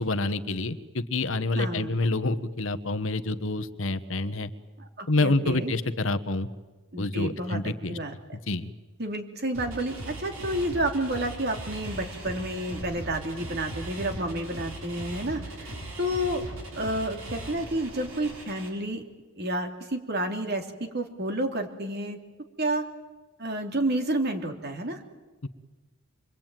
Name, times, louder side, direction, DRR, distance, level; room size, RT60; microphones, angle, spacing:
voice 1, 0.0-4.5 5.1-6.5 7.0-8.0 8.5-8.7 25.4-25.5, left 2 dB, 60° left, 10 dB, 1.2 m, -27 dB
voice 2, 1.5-2.0 4.8-5.7 6.9-8.1 9.0-16.4 16.7-19.0 19.4-22.2 22.6-22.8 23.4-25.0, right 1 dB, 45° right, 5 dB, 3.1 m, -30 dB
sound 1, 9.5-18.7, right 1 dB, 75° right, 7.0 m, -39 dB
26.5 x 22.5 x 9.1 m, 1.2 s
head